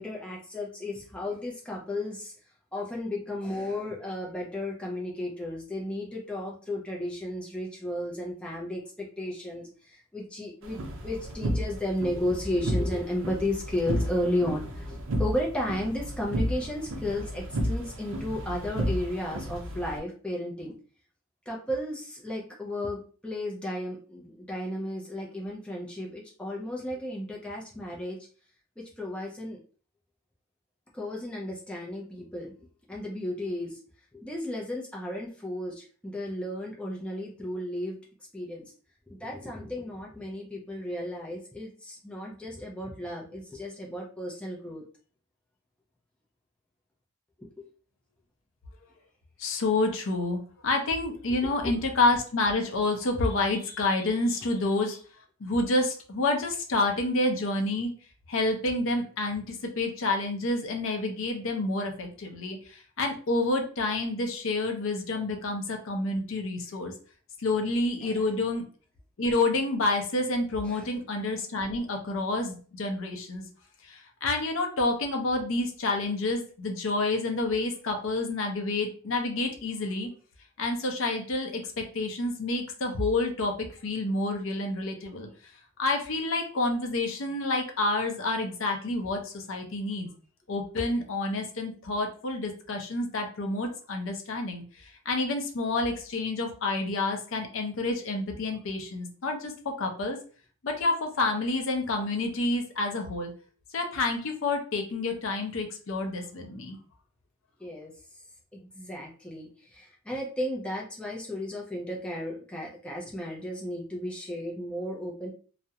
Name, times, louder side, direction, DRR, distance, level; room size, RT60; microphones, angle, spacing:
voice 1, 0.0-2.3 2.7-20.8 21.5-28.2 29.0-29.6 30.9-32.5 32.9-33.8 34.1-38.0 38.3-38.7 39.1-44.8 47.4-47.7 51.6-51.7 68.0-68.2 70.6-71.0 107.6-108.2 108.5-115.3, left 1 dB, 5° left, -3 dB, 0.4 m, -34 dB
sound 1, 10.6-20.0, equal, 60° right, 0.5 m, -32 dB
voice 2, 49.4-55.0 55.4-57.9 58.3-66.9 67.4-68.6 69.2-73.4 73.8-80.1 80.6-83.5 83.8-85.3 85.8-90.1 90.5-100.2 100.6-103.3 103.7-106.8, left 2 dB, 60° left, 3 dB, 0.5 m, -29 dB
2.3 x 2.0 x 2.7 m, 0.40 s
head